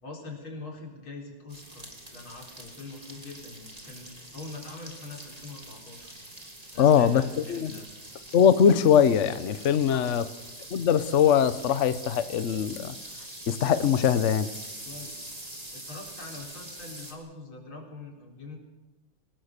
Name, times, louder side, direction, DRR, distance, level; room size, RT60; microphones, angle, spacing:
voice 1, 0.0-6.1 6.7-7.9 9.8-10.3 14.8-15.3 15.7-18.6, left 3 dB, 85° left, 1 dB, 5.1 m, -43 dB
sound 1, 1.5-17.1, right 1 dB, 20° right, 3.2 m, -44 dB
voice 2, 6.8-7.7 8.3-10.2 10.7-12.9 13.5-14.5, left 8 dB, 50° left, 13 dB, 0.9 m, -21 dB
25.5 x 19.0 x 6.7 m, 1.0 s
omnidirectional pair, 2.2 m